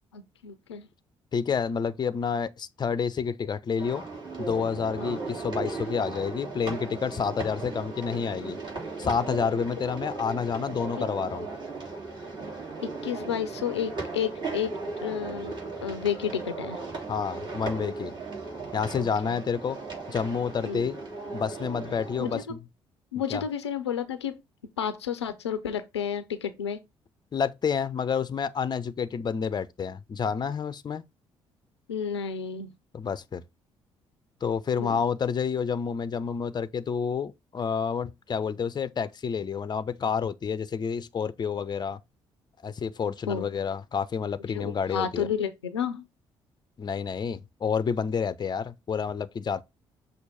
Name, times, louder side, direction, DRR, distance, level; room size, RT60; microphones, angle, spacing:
voice 1, 0.1-0.9 5.0-5.2 12.8-14.7 15.0-15.5 15.8-16.8 19.0-19.4 20.7-20.9 22.2-22.4 23.1-24.4 24.8-26.8 31.9-32.7 34.8-35.0 43.3-43.5 44.5-46.1, left 8 dB, 80° left, 0.5 m, -31 dB
voice 2, 1.3-4.0 4.4-8.6 9.0-11.5 17.1-18.1 18.7-19.8 20.1-21.0 21.3-22.6 23.3-23.4 27.3-31.0 32.9-33.4 34.4-42.0 42.6-45.3 46.8-49.6, left 6 dB, 30° left, 0.6 m, -29 dB
sound 1, 3.8-22.4, right 3 dB, 35° right, 3.1 m, -37 dB
6.2 x 2.9 x 5.5 m
figure-of-eight pair, 45°, 14 cm